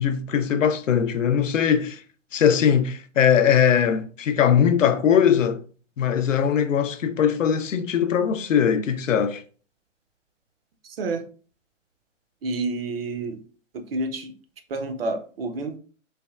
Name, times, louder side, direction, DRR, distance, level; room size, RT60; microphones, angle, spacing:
voice 1, 0.0-2.0 2.3-5.6 6.0-9.4, left 8 dB, 80° left, 0.5 m, -20 dB
voice 2, 10.8-11.2 12.4-13.4 13.7-14.3 14.7-15.8, right 2 dB, 50° right, 0.5 m, -29 dB
3.3 x 2.2 x 2.3 m
figure-of-eight pair, 130°, 38 cm